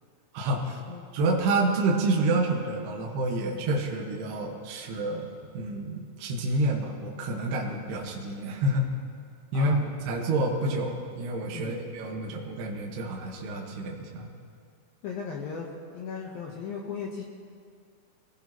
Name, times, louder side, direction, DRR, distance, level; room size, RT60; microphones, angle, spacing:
voice 1, 0.3-0.8 1.1-8.9 9.5-9.8 10.1-14.3, right 2 dB, 65° right, -2 dB, 3.1 m, -28 dB
voice 2, 9.5-9.9 10.2-10.3 11.5-11.8 15.0-15.7 15.9-17.2, left 6 dB, 75° left, -1 dB, 2.1 m, -36 dB
24.5 x 18.0 x 3.1 m, 2.2 s
omnidirectional pair, 5.9 m